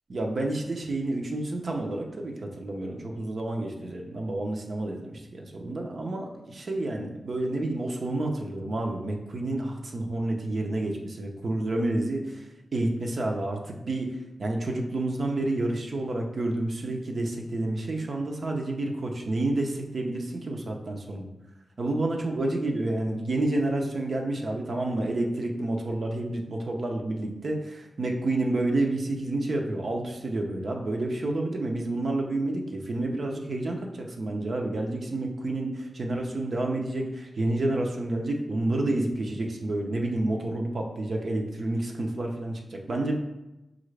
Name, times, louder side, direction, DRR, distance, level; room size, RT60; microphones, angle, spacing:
voice 1, 0.1-12.4 12.7-14.1 14.4-21.3 21.8-43.2, right 2 dB, 60° right, 1 dB, 0.7 m, -29 dB
5.4 x 2.5 x 3.2 m, 0.99 s
cardioid pair, 65°, 0 cm